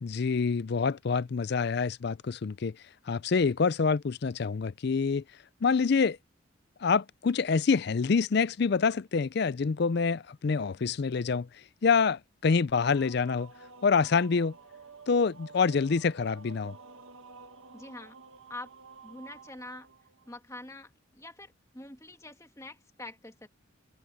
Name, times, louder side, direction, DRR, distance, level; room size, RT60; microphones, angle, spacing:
voice 1, 0.0-2.7 3.1-5.2 5.6-6.2 6.8-11.5 11.8-13.5 13.8-14.5 15.1-16.8, left 5 dB, 50° left, 0.4 m, -26 dB
sound 1, 12.8-20.4, right 4 dB, 75° right, 1.8 m, -51 dB
voice 2, 17.7-18.2 18.5-18.7 19.0-19.9 20.3-23.5, left 2 dB, 15° left, 1.8 m, -45 dB
head